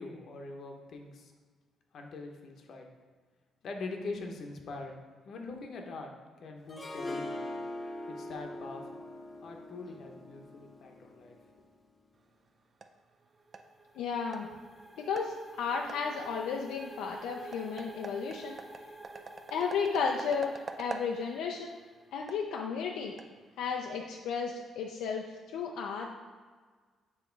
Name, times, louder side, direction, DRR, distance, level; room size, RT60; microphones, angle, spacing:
voice 1, 0.0-1.3 1.9-2.9 3.6-6.1 6.4-7.3 8.1-8.8 9.4-11.4, left 3 dB, 60° left, 3 dB, 0.8 m, -43 dB
Harp, 6.7-11.8, left 1 dB, 25° left, 0.7 m, -42 dB
sound 1, 12.1-24.0, right 4 dB, 40° right, 0.4 m, -48 dB
sound 2, 13.2-21.9, right 2 dB, 10° right, 0.9 m, -50 dB
voice 2, 14.0-14.5 15.0-18.6 19.5-21.8 22.1-23.1 23.6-26.1, left 5 dB, 90° left, 1 dB, 0.4 m, -33 dB
7.1 x 2.9 x 4.5 m, 1.5 s
cardioid pair, 90°, 0 cm